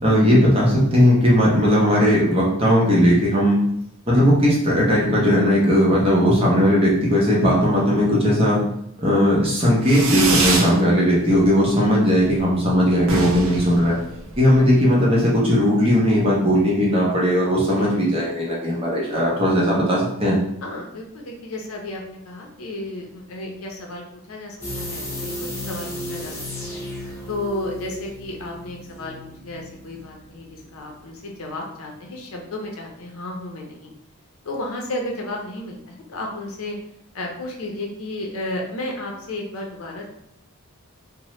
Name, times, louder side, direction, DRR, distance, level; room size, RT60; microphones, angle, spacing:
voice 1, 0.0-3.6 4.1-8.6 9.0-14.0 14.4-20.4, equal, 25° right, -5 dB, 0.7 m, -18 dB
Fireworks, 9.8-10.7 11.1-11.7 11.9-12.0 12.3-12.4 12.6-12.7 13.0-14.6, right 2 dB, 65° right, 0.5 m, -24 dB
voice 2, 20.6-26.8 27.3-29.2 29.4-33.9 34.4-36.8 37.1-40.0, left 1 dB, 70° left, 0 dB, 0.6 m, -33 dB
sound 1, 24.6-31.4 31.7-31.8, left 1 dB, 10° left, 0.6 m, -34 dB
2.9 x 2.1 x 3.0 m, 0.76 s
head